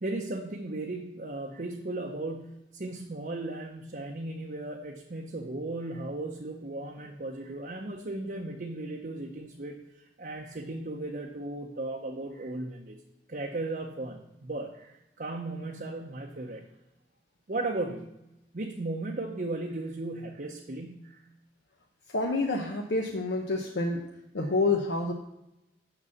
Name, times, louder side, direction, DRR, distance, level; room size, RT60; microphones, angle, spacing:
voice 1, 0.0-13.0 13.3-16.7 17.5-18.1 18.5-21.2, right 2 dB, 50° right, 1 dB, 0.7 m, -36 dB
voice 2, 22.1-24.1 24.3-25.1, left 3 dB, 75° left, 1 dB, 0.8 m, -28 dB
6.8 x 6.0 x 7.2 m, 0.90 s
head